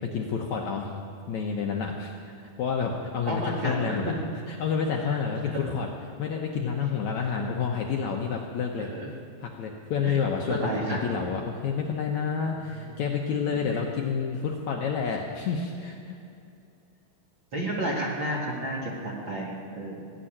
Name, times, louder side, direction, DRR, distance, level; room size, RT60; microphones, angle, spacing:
voice 1, 0.0-0.9 1.3-2.1 2.6-4.1 4.5-5.9 6.2-8.9 9.4-16.2, left 6 dB, 70° left, 0 dB, 1.9 m, -29 dB
voice 2, 3.3-4.2 5.1-5.2 5.4-5.7 8.8-9.1 10.0-10.1 10.5-11.2 12.8-13.0 13.7-13.8 17.5-20.0, right 1 dB, 45° right, -3 dB, 1.8 m, -31 dB
16.5 x 7.6 x 9.9 m, 2.5 s
omnidirectional pair, 4.3 m